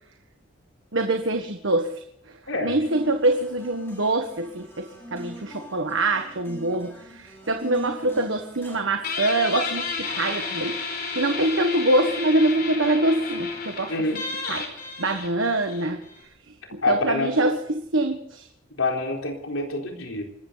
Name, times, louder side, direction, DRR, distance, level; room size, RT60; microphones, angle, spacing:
voice 1, 0.9-2.0 2.6-10.9 11.1-13.9 14.5-14.7 15.0-16.0 16.7-18.5, right 2 dB, 70° right, 5 dB, 1.5 m, -24 dB
sound 1, 2.8-8.8, right 1 dB, 10° left, 5.1 m, -42 dB
Guitar, 9.0-16.2, left 4 dB, 45° left, 4.6 m, -32 dB
voice 2, 13.9-14.2 16.8-17.5 18.8-20.2, left 2 dB, 80° left, 2 dB, 4.1 m, -26 dB
25.5 x 14.0 x 4.1 m, 0.73 s
head